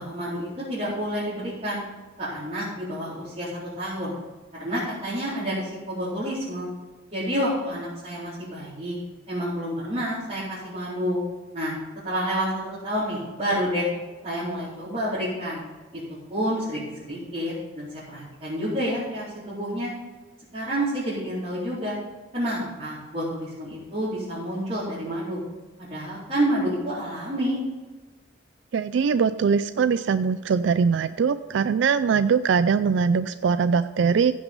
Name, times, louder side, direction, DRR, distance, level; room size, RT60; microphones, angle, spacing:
voice 1, 0.0-1.8 2.2-3.5 3.8-4.1 4.6-6.7 7.1-9.0 9.3-11.2 11.5-11.8 12.0-13.9 14.2-15.6 16.3-19.9 20.5-22.0 22.3-25.4 25.8-27.6, equal, 35° right, -11 dB, 4.2 m, -29 dB
voice 2, 28.7-34.3, right 6 dB, 70° right, 12 dB, 0.3 m, -22 dB
15.5 x 6.1 x 5.3 m, 1.2 s
head